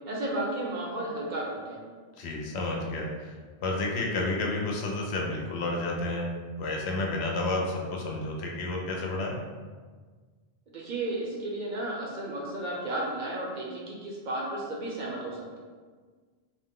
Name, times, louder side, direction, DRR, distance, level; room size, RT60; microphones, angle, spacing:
voice 1, 0.1-1.8 10.7-15.6, right 1 dB, 55° right, -3 dB, 0.6 m, -33 dB
voice 2, 2.2-3.4 3.6-6.3 6.6-9.4, left 2 dB, 85° left, -1 dB, 0.8 m, -30 dB
2.7 x 2.1 x 3.5 m, 1.5 s
omnidirectional pair, 1.0 m